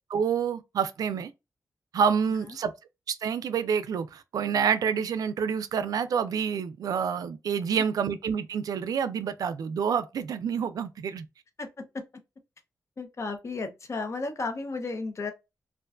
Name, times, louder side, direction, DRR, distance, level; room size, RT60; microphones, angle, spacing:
voice 1, 0.1-1.3 1.9-2.7 3.1-11.3, right 7 dB, 85° right, 0.3 m, -28 dB
voice 2, 11.6-12.0 13.0-15.3, left 3 dB, 50° left, 0.6 m, -34 dB
2.5 x 2.2 x 2.3 m
cardioid pair, 80°, 6 cm